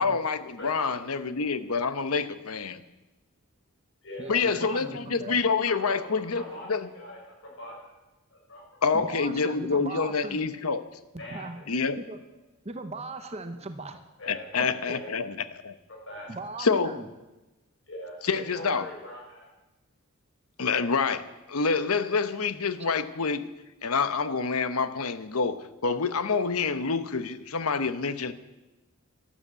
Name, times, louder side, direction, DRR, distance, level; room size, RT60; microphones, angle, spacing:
voice 1, 0.0-2.8 4.3-6.4 6.7-6.9 8.8-10.8 11.7-12.0 14.3-15.7 16.6-16.9 18.2-18.9 20.6-21.2 21.5-23.5 23.8-28.3, left 5 dB, 80° left, 12 dB, 1.0 m, -27 dB
voice 2, 0.6-1.5 4.0-4.3 5.8-7.8 8.3-8.6 11.2-11.6 14.2-14.5 14.9-15.1 15.9-16.3 17.9-19.5, left 1 dB, 60° left, -1 dB, 6.1 m, -42 dB
voice 3, 4.2-5.4 8.9-10.4 11.1-11.6 12.1-12.2 12.6-14.0 14.6-14.7 16.3-17.1, right 2 dB, 30° right, 8 dB, 0.9 m, -38 dB
12.5 x 12.0 x 8.2 m, 1.1 s
head